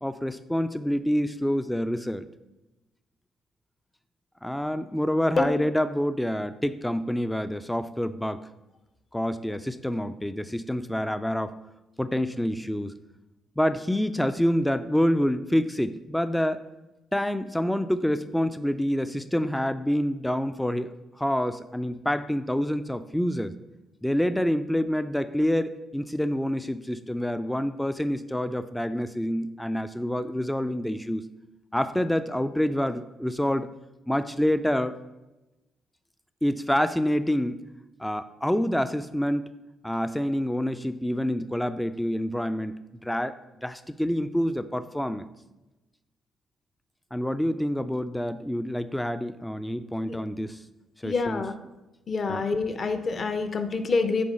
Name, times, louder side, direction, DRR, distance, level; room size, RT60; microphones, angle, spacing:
voice 1, 0.0-2.3 4.4-8.5 9.1-11.6 12.0-12.9 13.6-16.6 17.1-23.5 24.0-31.2 31.7-33.7 34.1-35.0 36.4-37.6 38.0-39.5 39.8-45.3 47.1-50.6 51.0-51.4 52.3-52.5, equal, 5° left, 12 dB, 0.3 m, -27 dB
voice 2, 51.0-51.5 52.1-54.2, left 4 dB, 45° left, 9 dB, 0.7 m, -26 dB
8.5 x 4.6 x 5.2 m, 1.0 s
cardioid pair, 90°, 0 cm